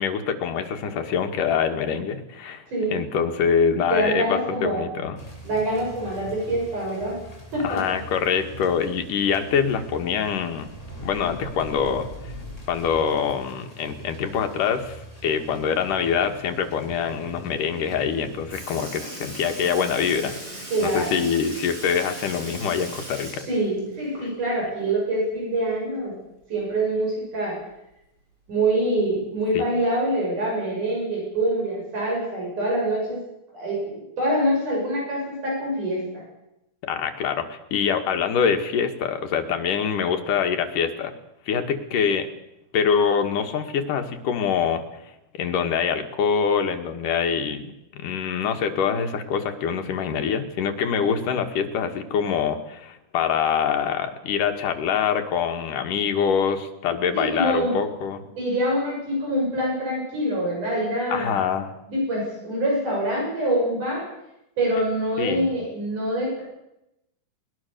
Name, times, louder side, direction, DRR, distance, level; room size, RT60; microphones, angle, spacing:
voice 1, 0.0-2.7 2.9-5.2 7.6-10.7 11.0-12.3 12.7-23.5 29.5-29.6 36.8-41.1 41.5-42.3 42.7-45.1 45.4-47.7 47.9-58.2 61.1-61.7 65.2-65.5, left 7 dB, 85° left, 5 dB, 3.3 m, -25 dB
voice 2, 3.9-4.9 5.4-7.2 7.5-8.0 20.7-21.2 23.5-26.2 26.5-27.6 28.5-33.2 33.5-36.2 48.8-48.9 57.1-57.8 58.4-61.4 61.9-64.1 64.6-66.4, right 1 dB, 70° right, -2 dB, 8.4 m, -25 dB
sound 1, 5.2-18.6, right 1 dB, 10° left, 5.9 m, -41 dB
Sink (filling or washing) / Liquid, 18.1-18.2 18.5-24.6 24.9-25.0 26.6-26.7 27.6-27.7 28.5-28.8 29.6-29.7, right 1 dB, 40° right, 7.5 m, -39 dB
21.0 x 20.0 x 6.8 m, 0.87 s
omnidirectional pair, 3.7 m